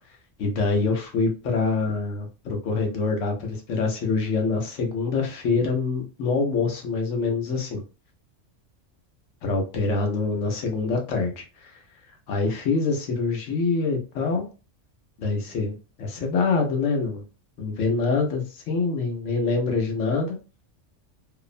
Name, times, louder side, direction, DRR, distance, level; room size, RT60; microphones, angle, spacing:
voice 1, 0.4-7.8 9.4-11.7 12.3-14.4 15.2-17.2 17.6-20.4, left 4 dB, 80° left, 3 dB, 1.1 m, -25 dB
2.8 x 2.0 x 2.4 m, 0.33 s
omnidirectional pair, 1.3 m